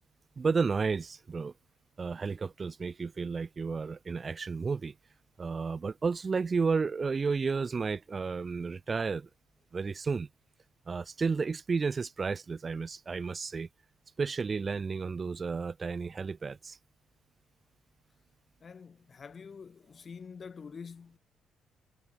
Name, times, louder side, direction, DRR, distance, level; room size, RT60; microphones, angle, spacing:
voice 1, 0.4-1.5 2.0-4.9 5.4-9.3 9.7-10.3 10.9-13.7 14.2-16.8, right 5 dB, 35° right, 0.4 m, -32 dB
voice 2, 18.6-21.2, left 5 dB, 40° left, 2.2 m, -46 dB
cardioid pair, 90°, 0 cm